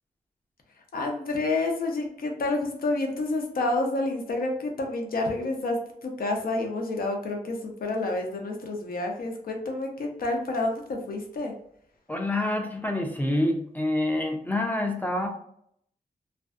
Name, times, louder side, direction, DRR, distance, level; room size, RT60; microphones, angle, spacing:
voice 1, 0.9-11.5, left 2 dB, 75° left, 2 dB, 0.6 m, -29 dB
voice 2, 12.1-15.3, left 1 dB, 10° left, 3 dB, 0.4 m, -27 dB
2.5 x 2.2 x 2.4 m, 0.69 s
wide cardioid pair, 105°, 15 cm